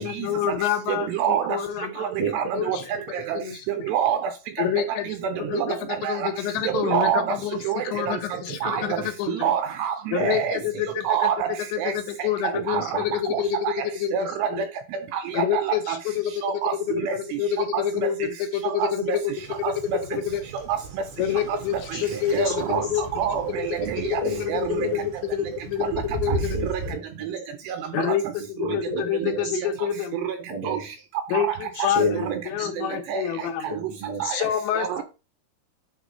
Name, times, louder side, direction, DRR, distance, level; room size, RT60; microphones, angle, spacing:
voice 1, 0.0-2.1 2.5-2.8 3.3-3.9 4.6-5.1 5.4-7.6 7.8-9.5 10.1-11.1 11.7-14.7 15.3-16.3 16.9-19.3 19.6-19.7 20.1-20.4 21.2-23.1 23.6-23.7 24.0-26.6 27.9-30.2 31.3-32.3 32.5-33.7 34.3-35.0, left 9 dB, 80° left, 2.9 m, -27 dB
voice 2, 1.1-1.6 2.0-2.1 2.3-2.8 3.1-3.4 3.9-4.2 5.3-5.7 6.0-6.3 6.7-7.2 7.7-8.1 8.6-9.0 9.3-10.6 11.1-11.9 12.7-13.0 13.3-13.7 14.1-14.5 15.1-16.0 16.4-16.7 17.0-17.4 17.7-17.8 18.8-19.2 19.6-20.0 22.3-22.8 23.2-23.6 23.9-24.2 24.5-24.9 25.9-26.0 28.0-28.1 30.2-30.4 30.7-30.8 31.3-31.4 33.1-33.2 34.2-34.4 34.8-35.0, right 9 dB, 90° right, 2.4 m, -26 dB
voice 3, 8.6-9.1 10.2-10.4 12.5-13.0 21.9-22.9 23.5-24.5 24.8-24.9 26.3-27.3 28.6-29.6 30.5-30.8 31.7-32.7 33.6-34.3, equal, 60° right, 1.3 m, -32 dB
Waves surf, 19.3-27.0, right 3 dB, 25° right, 1.1 m, -36 dB
9.8 x 5.0 x 3.4 m
omnidirectional pair, 5.4 m